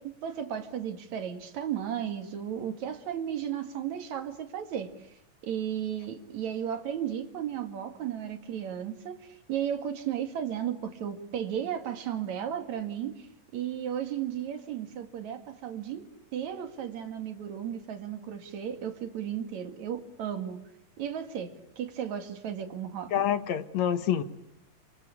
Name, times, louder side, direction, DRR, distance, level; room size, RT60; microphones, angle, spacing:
voice 1, 0.0-4.9 5.4-13.3 13.5-20.6 21.0-23.2, right 9 dB, 60° right, 8 dB, 3.3 m, -34 dB
voice 2, 23.1-24.2, left 9 dB, 60° left, 12 dB, 2.2 m, -27 dB
27.5 x 25.5 x 8.3 m, 0.81 s
omnidirectional pair, 3.9 m